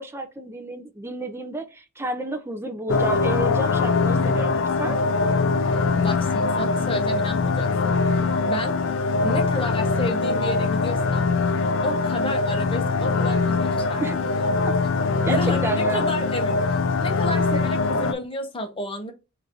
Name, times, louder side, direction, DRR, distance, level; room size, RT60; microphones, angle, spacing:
voice 1, 0.0-4.5 4.8-5.0 14.0-14.2 14.6-14.7 15.2-16.1, right 2 dB, 10° right, 0.5 m, -30 dB
sound 1, 2.9-18.1, left 4 dB, 65° left, 0.4 m, -22 dB
voice 2, 5.6-8.8 9.2-11.3 11.8-14.6 15.3-19.1, left 1 dB, 25° left, 0.8 m, -32 dB
3.9 x 2.6 x 4.1 m
head